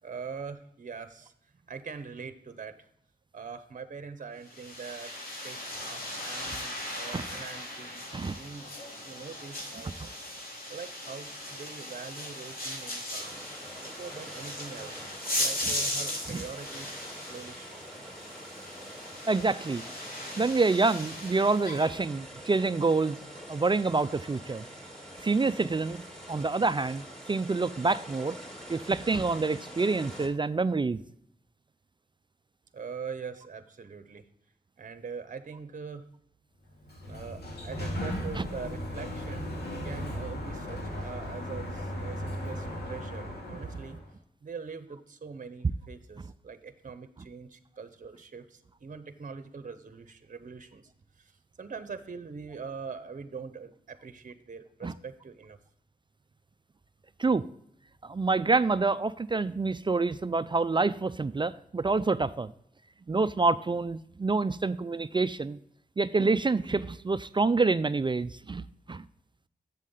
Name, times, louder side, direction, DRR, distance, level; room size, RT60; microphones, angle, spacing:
voice 1, 0.0-1.3 1.7-2.9 3.3-8.7 9.0-10.1 10.7-13.4 13.8-17.8 32.7-34.3 34.8-36.1 37.0-39.5 39.8-44.0 44.4-50.9 51.2-51.3 51.6-55.6, right 5 dB, 50° right, 11 dB, 0.8 m, -43 dB
sound 1, 4.5-21.9, left 1 dB, 60° left, 3.2 m, -38 dB
sound 2, 13.2-30.3, equal, 5° left, 3.6 m, -45 dB
voice 2, 19.3-19.8 20.4-23.2 23.5-24.6 25.2-26.0 26.3-28.4 28.7-31.0 38.4-38.5 54.8-54.9 57.2-57.4 58.0-62.5 63.1-65.6 66.0-69.0, right 3 dB, 30° right, 15 dB, 0.4 m, -27 dB
Sliding door, 36.7-44.1, equal, 75° left, 2.5 m, -36 dB
7.5 x 7.4 x 3.7 m, 0.72 s
cardioid pair, 50°, 17 cm